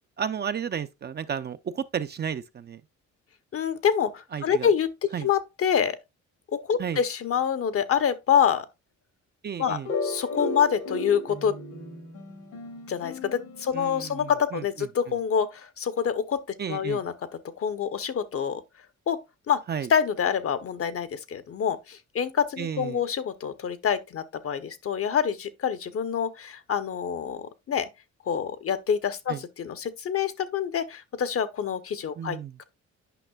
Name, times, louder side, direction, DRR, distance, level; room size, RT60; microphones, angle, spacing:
voice 1, 0.2-2.8 4.3-4.7 5.1-5.3 6.8-7.0 9.4-9.9 13.7-14.9 16.6-17.0 19.7-19.9 22.6-23.0 29.3-29.4 32.2-32.6, right 8 dB, 35° right, 0.4 m, -33 dB
voice 2, 3.5-4.9 5.2-6.0 6.5-8.7 9.6-11.6 12.9-16.4 16.7-17.1 17.6-18.6 19.1-19.2 19.5-19.6 19.9-27.9 28.3-32.6, left 7 dB, 50° left, 0.8 m, -26 dB
sound 1, 9.8-14.4, left 3 dB, 80° left, 2.0 m, -35 dB
9.1 x 5.4 x 2.3 m
cardioid pair, 90°, 30 cm